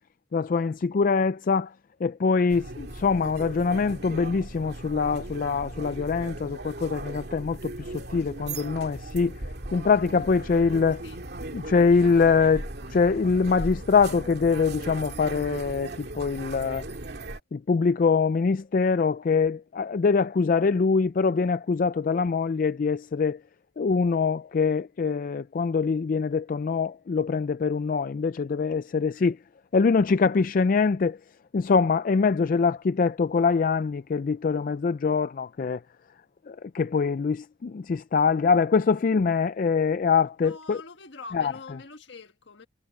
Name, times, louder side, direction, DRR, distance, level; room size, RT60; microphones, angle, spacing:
voice 1, 0.3-1.7 2.0-9.4 9.7-11.0 11.5-16.8 17.5-23.4 23.8-29.4 29.7-31.2 31.5-35.8 36.5-40.8 41.3-41.8, left 5 dB, 45° left, 0.4 m, -24 dB
sound 1, 2.5-17.4, right 2 dB, 60° right, 2.4 m, -38 dB
voice 2, 40.4-42.7, left 3 dB, 70° left, 1.5 m, -44 dB
head